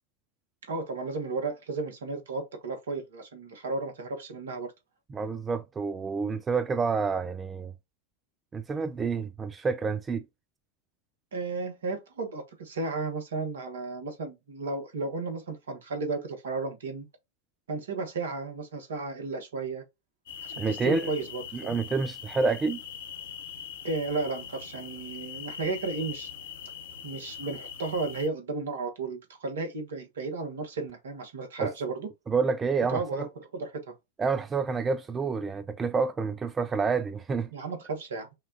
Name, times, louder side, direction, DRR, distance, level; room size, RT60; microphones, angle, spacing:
voice 1, 0.7-4.7 11.3-17.1 17.7-19.8 20.4-21.8 23.8-26.3 27.0-32.1 32.9-33.9 37.5-38.3, right 3 dB, 65° right, 1.1 m, -34 dB
voice 2, 5.1-7.7 8.5-10.2 20.6-21.1 21.5-22.8 31.6-31.7 32.3-33.3 34.2-37.5, right 5 dB, 20° right, 0.3 m, -28 dB
sound 1, 20.3-28.3, left 8 dB, 60° left, 1.0 m, -42 dB
5.5 x 2.3 x 2.7 m
figure-of-eight pair, 90°, 0 cm